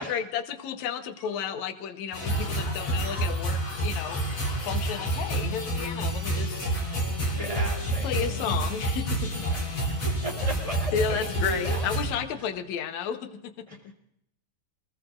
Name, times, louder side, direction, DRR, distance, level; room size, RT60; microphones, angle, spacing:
voice 1, 0.0-6.8 8.0-9.4 10.9-13.5, left 8 dB, 65° left, 8 dB, 2.2 m, -32 dB
sound 1, 2.1-12.1, right 1 dB, 45° left, 5.0 m, -29 dB
voice 2, 7.4-8.6 9.2-11.9 13.7-13.9, right 1 dB, 10° right, 1 dB, 3.9 m, -38 dB
27.5 x 20.5 x 2.6 m, 0.75 s
omnidirectional pair, 4.0 m